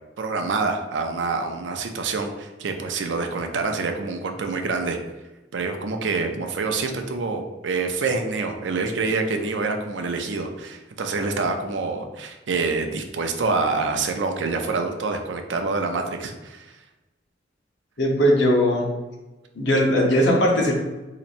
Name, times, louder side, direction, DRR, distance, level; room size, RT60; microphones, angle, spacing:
voice 1, 0.2-5.0 5.5-16.8, right 4 dB, 85° right, 5 dB, 0.5 m, -26 dB
voice 2, 18.0-18.9 19.6-20.7, equal, 80° left, -2 dB, 1.0 m, -19 dB
4.2 x 2.9 x 2.5 m, 1.1 s
head